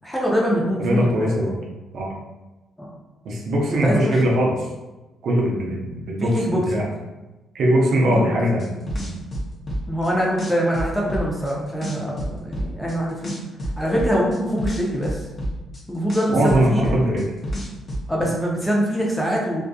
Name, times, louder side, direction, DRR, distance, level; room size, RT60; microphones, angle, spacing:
voice 1, 0.0-1.4 2.8-2.9 3.7-4.1 6.2-6.9 8.2-8.4 9.9-13.3 13.8-15.3 15.9-16.9 18.1-19.6, equal, 5° left, -3 dB, 0.7 m, -24 dB
voice 2, 0.8-1.5 1.9-2.1 3.2-4.5 5.2-6.9 7.5-8.7 9.0-9.1 16.3-17.3 18.2-18.3, right 1 dB, 70° right, -2 dB, 0.6 m, -21 dB
sound 1, 8.6-10.1 10.4-11.5 11.8-12.9 13.2-15.8 16.1-18.0, equal, 40° left, 0.7 m, -28 dB
2.6 x 2.4 x 2.3 m, 1.1 s
cardioid pair, 80°, 0 cm